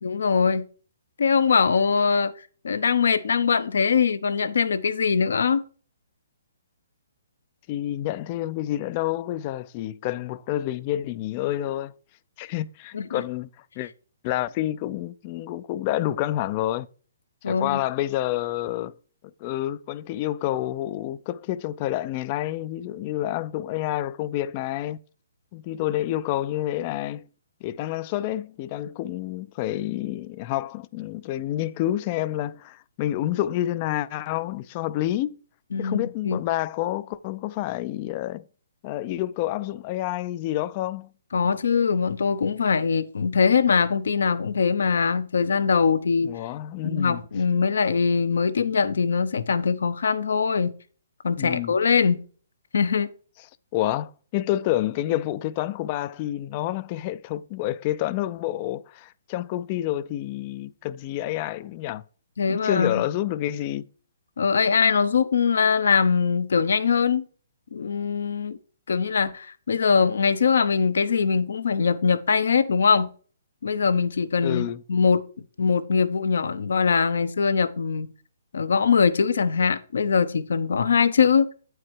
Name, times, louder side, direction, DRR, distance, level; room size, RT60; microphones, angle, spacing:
voice 1, 0.0-0.7 1.2-2.3 2.6-5.6 12.9-13.2 17.4-17.8 35.7-36.4 41.3-46.3 46.8-50.7 51.2-52.2 52.7-53.1 62.4-63.0 64.4-67.2 67.7-68.6 68.9-73.1 73.6-75.2 75.6-78.1 78.5-81.5, left 5 dB, 75° left, 0.8 m, -22 dB
voice 2, 7.7-11.9 12.4-13.5 13.8-13.9 14.2-16.9 17.5-18.9 19.4-25.0 25.5-27.3 27.6-35.4 35.8-38.4 38.8-41.1 46.2-47.2 51.4-51.8 53.7-62.0 62.5-63.8 74.4-74.8, left 14 dB, 35° left, 0.4 m, -28 dB
8.6 x 4.7 x 4.6 m
hypercardioid pair, 140°, 0 cm